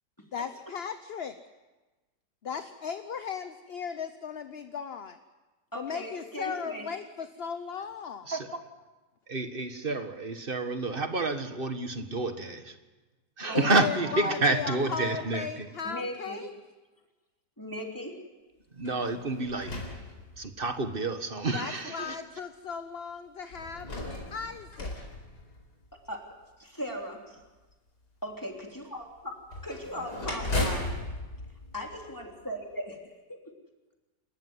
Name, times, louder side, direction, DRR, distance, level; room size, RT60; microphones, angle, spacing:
voice 1, 0.3-1.4 2.4-5.2 5.8-8.3 13.5-16.5 21.5-23.9 24.3-24.9, left 6 dB, 45° left, 9 dB, 0.9 m, -37 dB
voice 2, 5.7-6.9 13.5-13.8 15.8-16.4 17.6-18.2 26.1-27.2 28.2-29.3 29.6-30.9 31.7-32.9 33.3-33.4, equal, 10° left, 1 dB, 3.2 m, -38 dB
voice 3, 8.3-8.6 9.3-12.7 13.4-15.7 18.8-19.7 20.4-22.2, right 3 dB, 35° right, 8 dB, 1.6 m, -29 dB
Gas Oven Door open & close, 18.8-20.8 21.6-21.7 23.5-26.1 29.5-32.5, left 2 dB, 65° left, 4.9 m, -36 dB
28.5 x 14.0 x 9.6 m, 1.2 s
omnidirectional pair, 1.8 m